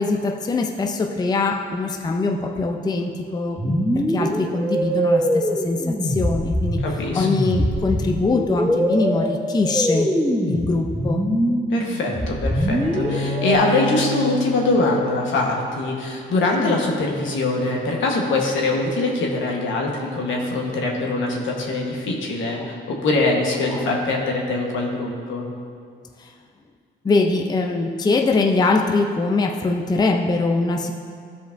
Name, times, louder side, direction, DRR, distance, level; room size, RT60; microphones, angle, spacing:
voice 1, 0.0-6.8 7.1-10.1 10.5-11.3 16.6-16.8 22.6-22.8 23.7-23.9 26.2-26.3 27.0-30.9, left 3 dB, 20° left, 4 dB, 0.5 m, -22 dB
sound 1, 3.6-13.5, equal, ahead, 0.9 m, -23 dB
voice 2, 6.8-7.3 11.7-25.5, left 2 dB, 75° left, 0 dB, 1.2 m, -23 dB
Bowed string instrument, 12.8-16.4, left 2 dB, 70° right, 2.0 m, -31 dB
14.0 x 5.1 x 2.6 m, 2.2 s
cardioid pair, 90°, 20 cm